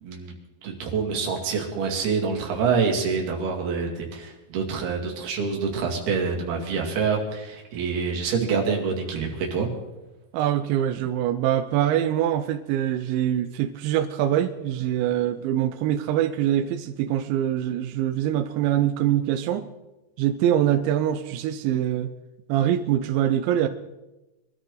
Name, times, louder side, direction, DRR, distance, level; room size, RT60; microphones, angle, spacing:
voice 1, 0.0-0.3 0.6-9.7, right 5 dB, 65° right, 0 dB, 4.2 m, -26 dB
voice 2, 10.3-19.7 20.2-22.1 22.5-23.7, right 11 dB, 90° right, 7 dB, 3.0 m, -24 dB
24.0 x 13.5 x 3.9 m, 1.0 s
omnidirectional pair, 5.1 m